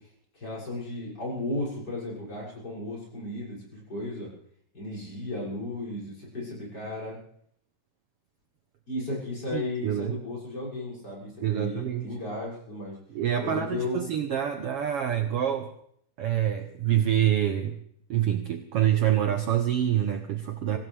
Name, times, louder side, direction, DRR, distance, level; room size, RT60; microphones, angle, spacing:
voice 1, 0.3-4.3 4.7-7.2 8.9-13.0 13.4-14.0 20.7-20.8, left 2 dB, 30° left, -5 dB, 7.5 m, -34 dB
voice 2, 9.5-10.2 11.4-12.1 13.1-15.7 16.2-17.8 18.1-20.8, right 10 dB, 65° right, 6 dB, 1.6 m, -26 dB
25.0 x 16.5 x 3.5 m, 0.66 s
omnidirectional pair, 3.5 m